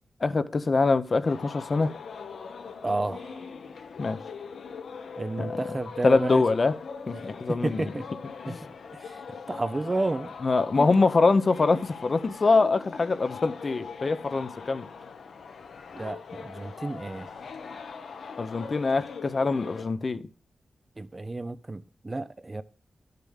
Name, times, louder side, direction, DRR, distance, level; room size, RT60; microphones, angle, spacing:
voice 1, 0.2-1.9 4.0-4.2 5.4-5.6 6.0-6.7 7.1-7.8 8.5-8.6 10.4-14.8 18.4-20.2, left 3 dB, 40° left, 0.8 m, -24 dB
sound 1, 1.2-19.8, left 5 dB, 80° left, 1.2 m, -41 dB
voice 2, 2.8-3.5 5.2-6.4 7.5-8.1 8.5-8.6 9.0-9.2 9.5-10.3 10.8-11.0 15.9-17.3 21.0-22.6, right 2 dB, 25° right, 0.6 m, -31 dB
12.0 x 6.8 x 6.5 m
wide cardioid pair, 120°, 0 cm